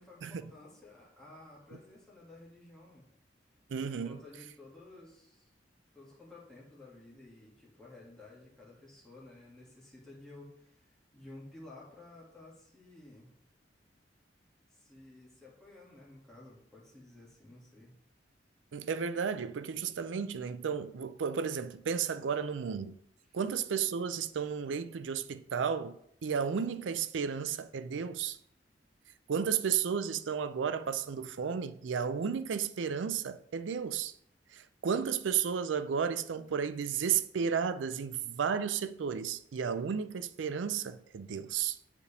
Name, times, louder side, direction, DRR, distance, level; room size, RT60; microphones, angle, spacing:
voice 1, 0.0-3.1 3.8-5.5 5.9-13.3 14.7-18.0 22.3-22.4 23.3-23.4, left 2 dB, 5° left, 2.2 m, -53 dB
voice 2, 3.7-4.2 18.7-23.0 23.3-28.4 29.3-34.1 34.5-41.8, right 7 dB, 90° right, 0.4 m, -33 dB
7.9 x 5.0 x 3.4 m
head